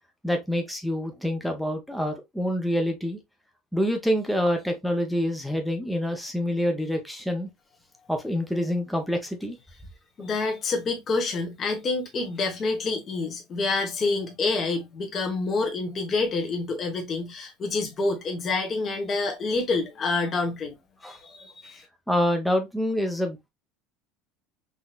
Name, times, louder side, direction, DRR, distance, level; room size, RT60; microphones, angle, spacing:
voice 1, 0.2-3.2 3.7-7.5 8.1-9.6 21.0-21.2 22.1-23.5, equal, ahead, 0.7 m, -26 dB
voice 2, 10.2-20.8 21.0-21.8, left 3 dB, 35° left, 1.1 m, -27 dB
3.9 x 2.7 x 2.3 m
supercardioid pair, 130°, 0 cm